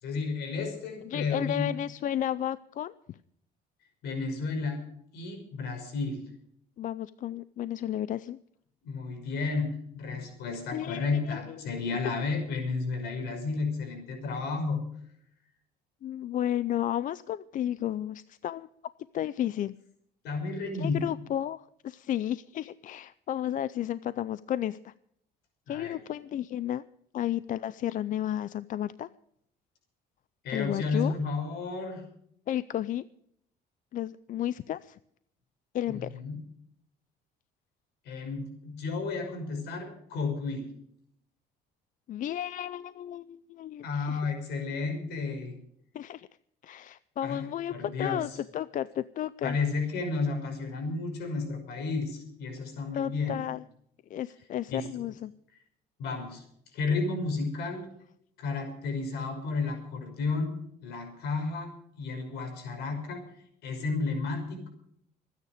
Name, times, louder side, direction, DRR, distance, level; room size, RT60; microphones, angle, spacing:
voice 1, 0.0-1.8 4.0-4.8 5.1-6.2 8.8-14.8 20.2-21.1 25.7-26.0 30.4-32.0 35.9-36.4 38.0-40.7 43.8-45.6 47.2-48.4 49.4-53.5 54.7-54.9 56.0-56.4 56.7-57.9 58.4-60.5 60.8-61.7 62.0-63.2 63.6-64.7, left 4 dB, 80° left, 5 dB, 5.7 m, -32 dB
voice 2, 1.0-3.2 6.8-8.4 10.7-11.6 16.0-18.7 19.1-19.7 20.7-24.9 25.7-26.8 27.1-29.1 30.5-31.1 32.5-33.0 33.9-35.0 35.7-36.1 42.1-44.2 45.9-46.3 46.6-49.6 52.9-53.6 54.1-55.3, left 11 dB, 50° left, 16 dB, 0.5 m, -33 dB
25.0 x 9.6 x 5.0 m, 0.70 s
cardioid pair, 110°, 17 cm